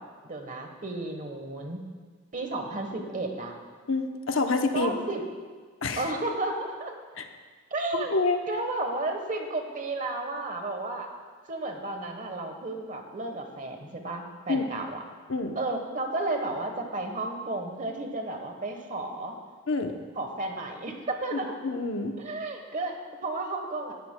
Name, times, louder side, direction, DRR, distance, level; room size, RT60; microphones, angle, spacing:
voice 1, 0.0-1.8 2.3-3.5 4.7-5.2 6.0-6.9 7.7-11.1 11.5-15.0 15.5-19.3 20.1-21.5 22.2-23.9, right 2 dB, 35° right, 4 dB, 1.1 m, -33 dB
voice 2, 3.9-5.0 5.8-6.1 7.2-7.3 7.9-8.4 14.5-14.6 15.3-15.6 19.7-19.9 21.6-22.1, left 3 dB, 65° left, 5 dB, 0.8 m, -27 dB
16.0 x 11.5 x 2.2 m, 1.5 s
head